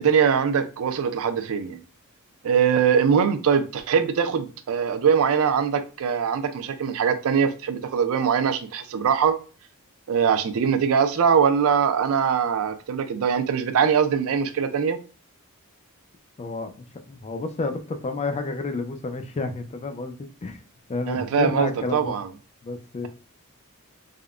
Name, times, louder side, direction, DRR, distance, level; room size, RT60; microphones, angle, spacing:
voice 1, 0.0-1.8 2.4-9.4 10.1-15.0 21.1-22.3, right 7 dB, 70° right, 0.4 m, -22 dB
voice 2, 16.4-20.6 20.9-22.2 22.6-23.1, left 3 dB, 30° left, 0.4 m, -30 dB
3.6 x 2.1 x 2.3 m
head